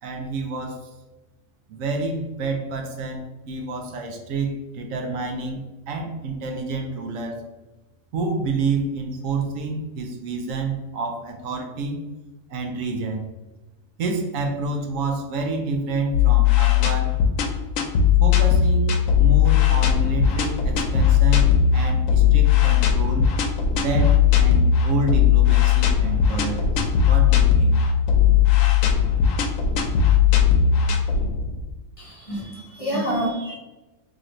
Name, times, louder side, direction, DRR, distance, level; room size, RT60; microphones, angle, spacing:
voice 1, 0.0-0.8 1.7-7.4 8.1-12.0 12.5-13.3 14.0-17.2 18.2-23.3 23.7-27.8, right 3 dB, 80° right, 3 dB, 1.0 m, -28 dB
sound 1, 16.1-31.7, left 8 dB, 80° left, 1.0 m, -18 dB
voice 2, 32.0-33.5, right 1 dB, 30° left, -4 dB, 0.9 m, -27 dB
3.0 x 2.5 x 4.2 m, 1.1 s
omnidirectional pair, 1.4 m